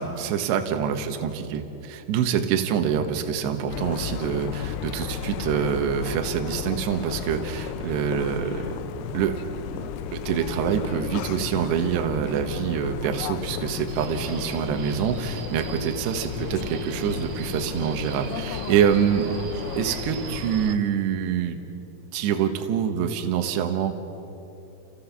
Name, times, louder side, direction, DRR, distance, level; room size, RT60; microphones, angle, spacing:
voice 1, 0.0-8.7 9.1-9.4 9.7-19.4 19.8-21.6 22.1-23.9, right 8 dB, 70° right, 6 dB, 3.0 m, -26 dB
sound 1, 3.7-20.8, left 9 dB, 85° left, 3.3 m, -34 dB
Subway metro underground, 13.9-20.7, right 8 dB, 85° right, 3.6 m, -40 dB
28.5 x 16.0 x 7.1 m, 2.8 s
omnidirectional pair, 5.9 m